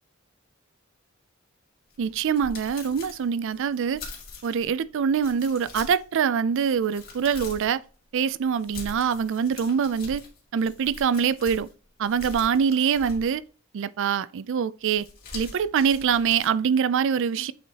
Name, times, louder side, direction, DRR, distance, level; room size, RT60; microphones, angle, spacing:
sound 1, 1.9-4.7 5.2-6.2 6.6-7.8 8.6-11.7 12.1-13.5 14.9-16.5, left 3 dB, 45° left, 2.1 m, -43 dB
voice 1, 2.0-4.0 4.4-7.8 8.1-10.2 10.5-11.7 12.0-13.4 13.7-15.1 15.3-17.5, right 7 dB, 65° right, 0.4 m, -24 dB
8.1 x 4.5 x 2.8 m
head